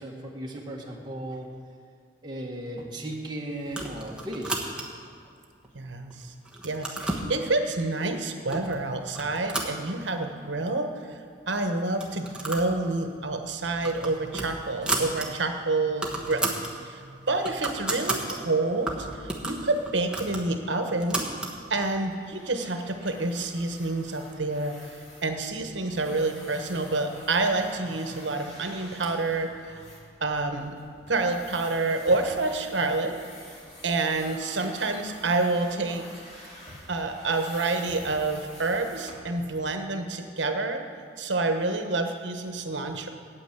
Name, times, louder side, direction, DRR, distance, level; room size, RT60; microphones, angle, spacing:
voice 1, 0.0-1.5 2.2-4.7, right 1 dB, 25° right, -1 dB, 1.5 m, -36 dB
sound 1, 3.7-5.1 5.6-6.1 6.4-7.3 8.0-8.1 8.5-8.8 9.1-10.4 10.7-10.8 11.0-11.1 11.9-12.7 13.0-13.2 13.6-15.3 15.6-15.7 15.9-16.7 17.1-18.4 18.9-21.6, right 2 dB, 5° right, 1.2 m, -33 dB
voice 2, 5.7-6.3 6.6-10.9 11.5-21.3 21.7-24.8 25.2-29.8 30.2-30.8 31.1-33.2 33.8-36.2 36.9-40.8 41.2-43.1, right 3 dB, 70° right, 5 dB, 1.1 m, -28 dB
sound 2, 20.8-39.6, left 1 dB, 35° left, 2.8 m, -48 dB
9.0 x 8.7 x 8.2 m, 2.3 s
head